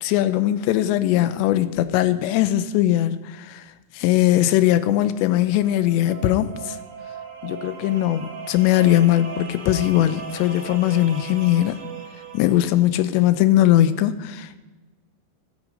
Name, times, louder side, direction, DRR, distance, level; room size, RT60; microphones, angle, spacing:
voice 1, 0.0-3.7 3.9-6.8 7.4-11.8 12.3-14.6, left 13 dB, 80° left, 2.8 m, -20 dB
sound 1, 5.2-12.9, right 6 dB, 50° right, 3.1 m, -38 dB
13.5 x 13.5 x 5.2 m
omnidirectional pair, 5.2 m